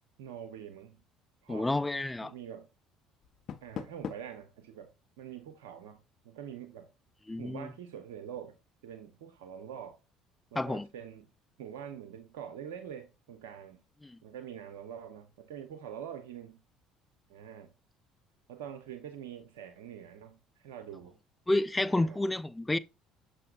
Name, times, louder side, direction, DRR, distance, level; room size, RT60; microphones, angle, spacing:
voice 1, 0.2-1.0 1.4-1.7 2.2-2.7 3.6-4.9 5.2-6.9 7.4-8.6 8.8-10.0 10.5-11.3 11.6-13.8 14.2-16.6 17.3-17.7 18.5-21.2 21.8-22.2, right 9 dB, 85° right, 0.7 m, -45 dB
voice 2, 1.5-2.3 7.3-7.7 10.6-10.9 14.0-14.2 21.5-22.8, left 2 dB, 10° left, 0.5 m, -30 dB
Door, 3.2-4.4, left 7 dB, 55° left, 0.8 m, -41 dB
6.6 x 6.4 x 2.4 m
supercardioid pair, 75°, 0 cm